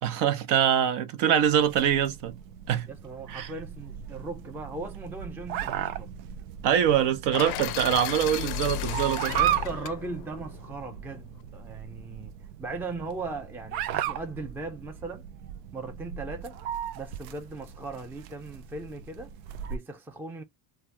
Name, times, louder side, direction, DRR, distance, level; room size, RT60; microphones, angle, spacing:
voice 1, 0.0-2.4 2.7-2.9 3.3-3.5 6.6-9.3, right 9 dB, 60° right, 0.8 m, -24 dB
sound 1, 1.4-19.8, right 11 dB, 85° right, 0.6 m, -36 dB
voice 2, 2.9-6.1 9.4-12.3 12.6-15.2 15.7-16.6 16.9-19.3 19.7-20.4, right 3 dB, 5° right, 0.4 m, -38 dB
sound 2, 7.3-11.4, left 13 dB, 55° left, 0.5 m, -35 dB
3.2 x 2.3 x 2.5 m
supercardioid pair, 90°, 48 cm